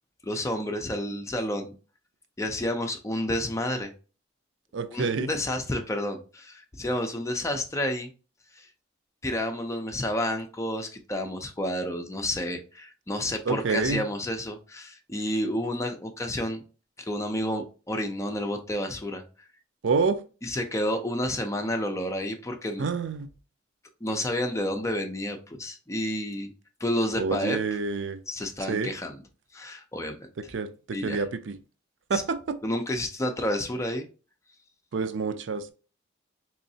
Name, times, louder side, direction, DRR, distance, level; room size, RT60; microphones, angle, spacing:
voice 1, 0.2-1.7 2.4-3.9 4.9-8.1 8.6-8.7 9.2-16.6 17.0-19.2 20.4-22.8 24.0-26.5 26.8-27.6 28.3-29.2 29.5-30.3 30.9-31.2 32.1-32.2 32.6-34.1, left 1 dB, 15° left, 0.6 m, -30 dB
voice 2, 4.7-5.3 13.5-14.0 19.8-20.2 22.8-23.3 27.2-28.2 28.7-28.9 30.5-31.6 32.1-32.4 34.9-35.7, right 4 dB, 70° right, 0.4 m, -27 dB
3.8 x 3.1 x 2.7 m
head